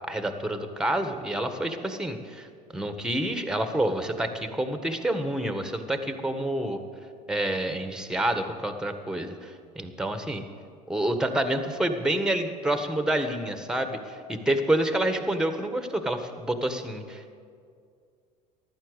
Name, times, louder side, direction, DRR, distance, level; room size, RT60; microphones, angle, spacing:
voice 1, 0.1-2.5 2.7-6.8 7.3-10.4 10.9-17.3, right 1 dB, 5° right, 8 dB, 1.6 m, -28 dB
15.0 x 11.5 x 8.2 m, 2.3 s
hypercardioid pair, 75°, 21 cm